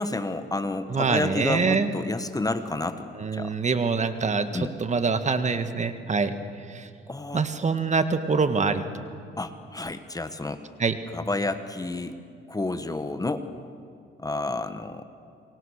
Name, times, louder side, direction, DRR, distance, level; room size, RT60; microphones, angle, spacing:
voice 1, 0.0-3.5 4.5-4.7 7.1-7.4 9.4-10.6 11.1-12.2 12.5-13.5 14.2-15.0, left 2 dB, 20° left, 10 dB, 1.4 m, -30 dB
voice 2, 0.9-1.9 3.2-6.3 6.7-6.9 7.3-8.8 10.8-11.0, right 4 dB, 35° right, 9 dB, 1.8 m, -25 dB
28.5 x 23.5 x 6.6 m, 2.4 s
cardioid pair, 90°, 20 cm